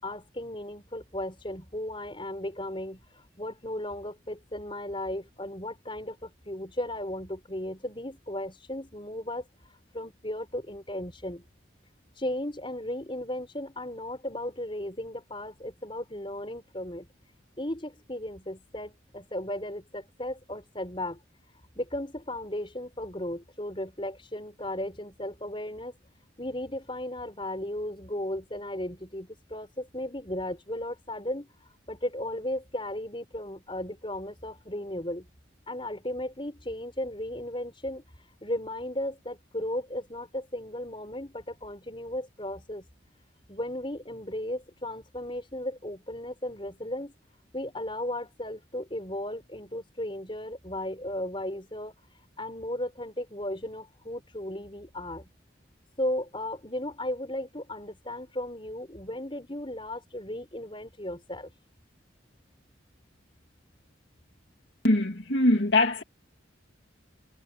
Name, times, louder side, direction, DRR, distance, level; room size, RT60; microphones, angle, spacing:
voice 1, 0.0-3.0 3.4-9.4 9.9-11.4 12.2-17.1 17.6-21.2 21.7-25.9 26.4-31.5 31.9-35.3 35.7-38.0 38.4-42.9 43.5-47.1 47.5-51.9 52.4-55.3 56.0-61.5, left 1 dB, 25° left, 5.1 m, -35 dB
voice 2, 64.8-66.0, left 1 dB, 65° left, 2.4 m, -22 dB
head